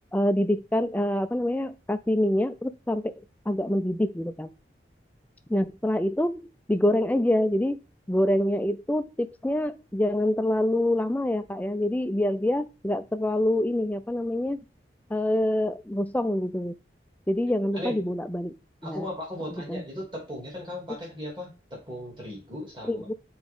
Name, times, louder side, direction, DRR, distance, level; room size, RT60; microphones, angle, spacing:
voice 1, 0.1-3.1 3.5-4.5 5.5-7.8 8.1-14.6 15.1-16.7 17.3-18.5 18.8-19.1 19.6-19.8 22.8-23.1, left 1 dB, 10° left, 10 dB, 0.4 m, -26 dB
voice 2, 18.8-23.1, left 1 dB, 25° right, -3 dB, 2.7 m, -37 dB
7.1 x 4.3 x 3.7 m, 0.32 s
head